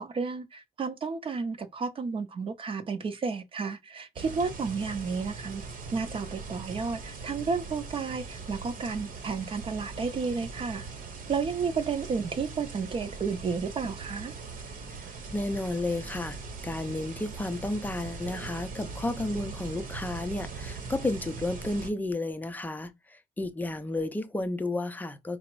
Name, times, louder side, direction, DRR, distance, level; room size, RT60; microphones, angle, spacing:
voice 1, 0.0-5.6 5.9-10.9 11.3-14.3, right 5 dB, 35° right, 0.6 m, -32 dB
sound 1, 4.2-21.9, right 4 dB, 55° right, 1.0 m, -41 dB
voice 2, 14.9-25.4, left 2 dB, 10° left, 0.4 m, -32 dB
4.8 x 2.0 x 4.6 m
cardioid pair, 170°, 16 cm